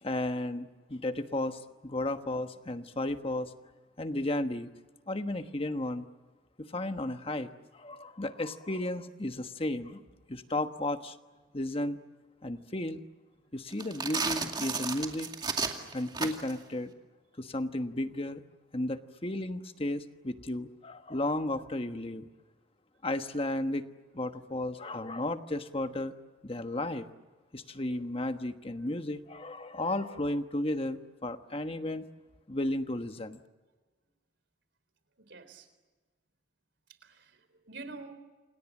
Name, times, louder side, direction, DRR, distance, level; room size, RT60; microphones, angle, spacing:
voice 1, 0.0-3.5 4.0-4.7 5.1-6.1 6.6-10.0 10.3-11.2 11.5-12.0 12.4-13.0 13.5-15.3 15.9-16.9 17.4-18.4 18.7-22.3 23.0-23.9 24.1-26.1 26.4-27.1 27.5-32.1 32.5-33.4, left 1 dB, 30° left, 8 dB, 1.3 m, -34 dB
sound 1, 13.7-16.6, right 4 dB, 25° right, 2.4 m, -33 dB
voice 2, 35.2-35.7 37.0-38.1, right 3 dB, 60° right, 11 dB, 4.0 m, -47 dB
29.0 x 27.0 x 7.4 m, 1.3 s
head